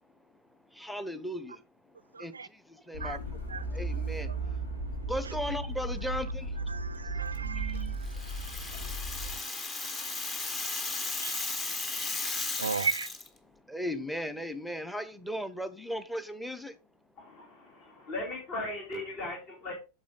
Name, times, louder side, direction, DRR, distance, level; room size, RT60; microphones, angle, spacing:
voice 1, 0.7-1.6 1.9-6.6 7.0-8.2 9.2-9.3 11.6-12.2 13.4-16.8, equal, ahead, 0.9 m, -38 dB
voice 2, 2.1-2.5 3.0-3.2 3.5-3.6 6.7-9.0 11.2-11.4 12.6-13.1, right 5 dB, 75° right, 0.4 m, -36 dB
sound 1, 2.9-9.4, right 2 dB, 80° left, 2.7 m, -35 dB
Rattle (instrument), 8.0-13.3, left 3 dB, 20° left, 1.3 m, -35 dB
voice 3, 17.2-19.7, left 2 dB, 40° left, 2.6 m, -38 dB
8.6 x 6.6 x 3.9 m
figure-of-eight pair, 90°, 0 cm